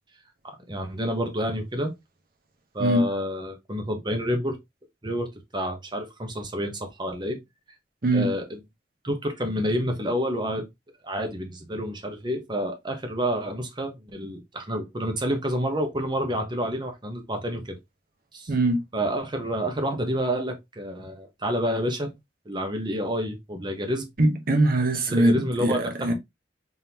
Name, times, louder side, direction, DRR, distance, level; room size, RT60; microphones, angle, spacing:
voice 1, 0.7-1.9 2.7-4.6 5.0-7.4 8.1-8.6 9.0-10.7 11.0-17.8 18.3-18.5 18.9-22.1 22.5-24.1 25.0-26.1, equal, 25° right, 1.0 m, -29 dB
voice 2, 18.5-18.8 24.2-26.1, right 1 dB, 55° right, 1.0 m, -22 dB
3.7 x 3.7 x 2.9 m
head